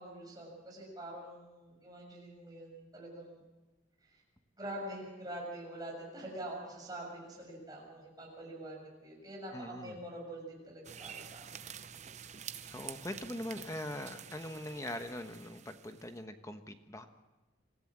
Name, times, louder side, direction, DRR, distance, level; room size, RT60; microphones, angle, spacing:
voice 1, 0.0-3.4 4.0-4.2 4.6-11.5, right 1 dB, 20° right, -2 dB, 7.0 m, -45 dB
voice 2, 9.5-10.0 12.6-17.1, left 1 dB, 15° left, 7 dB, 1.1 m, -42 dB
sound 1, 10.8-16.2, right 8 dB, 35° right, 0.7 m, -48 dB
25.0 x 15.0 x 7.5 m, 1.1 s
head